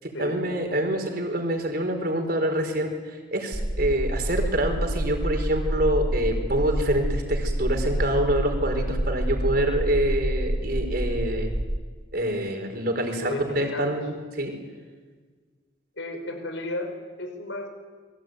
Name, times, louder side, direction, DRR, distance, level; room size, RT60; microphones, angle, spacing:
voice 1, 0.0-11.5 12.1-14.5, right 1 dB, 50° right, 4 dB, 4.7 m, -26 dB
sound 1, 3.5-11.8, right 1 dB, 25° right, 1.0 m, -28 dB
voice 2, 13.1-14.0 16.0-17.7, left 1 dB, 75° left, 5 dB, 5.4 m, -34 dB
28.0 x 22.0 x 9.4 m, 1.5 s
head